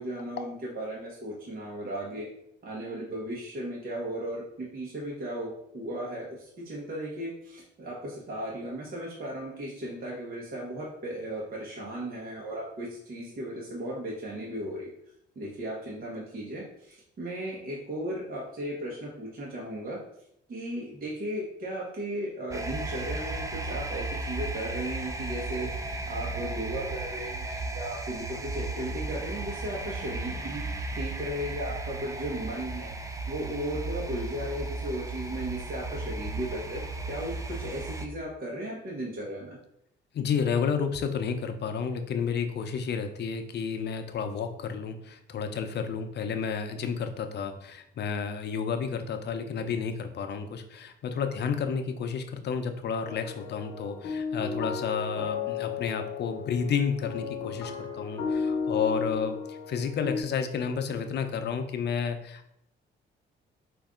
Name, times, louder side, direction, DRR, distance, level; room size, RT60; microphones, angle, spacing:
voice 1, 0.0-2.3 2.6-14.9 15.3-20.0 20.5-25.7 26.0-30.6 30.9-32.9 33.3-39.6, right 1 dB, 45° right, -4 dB, 1.2 m, -36 dB
sound 1, 22.5-38.1, right 2 dB, 15° right, 0.5 m, -35 dB
voice 2, 40.1-62.5, left 6 dB, 60° left, 7 dB, 0.6 m, -31 dB
sound 2, 53.0-60.2, left 5 dB, 90° left, 0.9 m, -34 dB
5.2 x 2.6 x 3.7 m, 0.74 s
cardioid pair, 90°, 20 cm